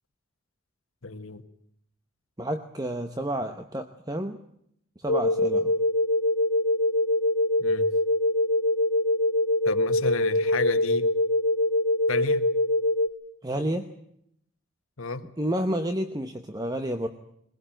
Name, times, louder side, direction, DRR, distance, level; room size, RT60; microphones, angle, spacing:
voice 1, 1.0-1.4 7.6-7.9 9.6-11.1 12.1-12.5 15.0-15.2, left 3 dB, 80° left, 10 dB, 1.5 m, -31 dB
voice 2, 2.4-4.4 5.0-5.7 13.4-13.9 15.4-17.1, right 1 dB, 20° right, 8 dB, 0.9 m, -30 dB
sound 1, 5.1-13.1, left 1 dB, 50° left, 3.9 m, -23 dB
22.0 x 17.5 x 9.0 m, 0.73 s
head